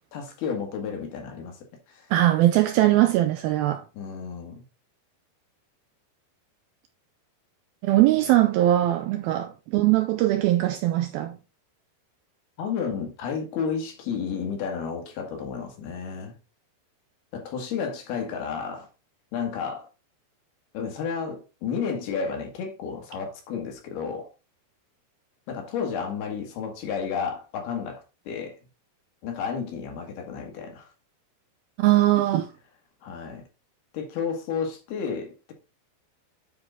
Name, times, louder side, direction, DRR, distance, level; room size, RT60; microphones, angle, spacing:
voice 1, 0.1-1.6 1.9-2.1 3.9-4.6 12.6-16.3 17.3-18.9 19.3-19.9 20.7-24.3 25.5-28.6 29.2-30.9 33.0-33.4 33.9-35.5, left 6 dB, 70° left, 3.5 m, -32 dB
voice 2, 2.1-3.8 7.8-11.4 31.8-32.5, right 15 dB, 90° right, 2.2 m, -21 dB
9.8 x 4.8 x 3.8 m
omnidirectional pair, 4.9 m